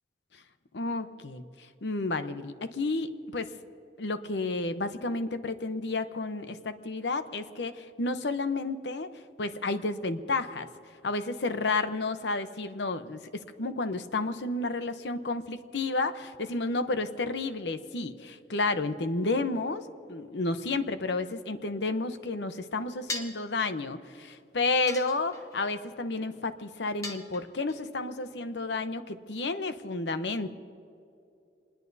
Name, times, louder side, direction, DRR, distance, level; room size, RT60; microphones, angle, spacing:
voice 1, 0.7-1.4 1.8-3.5 4.0-9.1 9.4-10.7 11.0-30.5, left 3 dB, 80° left, 10 dB, 0.8 m, -31 dB
sound 1, 23.1-23.5 24.9-25.6 27.0-27.8, left 2 dB, 15° left, 1.0 m, -38 dB
25.5 x 20.5 x 2.7 m, 2.7 s
head